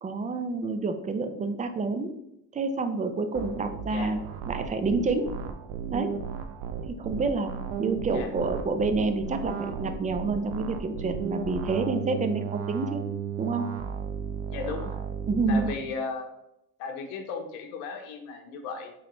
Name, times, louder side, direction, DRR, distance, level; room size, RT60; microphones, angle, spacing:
voice 1, 0.0-2.1 2.5-4.2 4.5-5.3 5.9-6.1 7.0-7.5 7.8-13.1 13.4-13.7 15.3-15.7, right 3 dB, 20° right, 7 dB, 0.5 m, -28 dB
sound 1, 3.3-15.7, right 7 dB, 70° right, 0.6 m, -35 dB
voice 2, 14.5-15.0 15.5-16.3 16.8-18.9, left 5 dB, 75° left, 5 dB, 0.9 m, -35 dB
4.1 x 3.2 x 3.0 m, 0.83 s
hypercardioid pair, 65°, 44 cm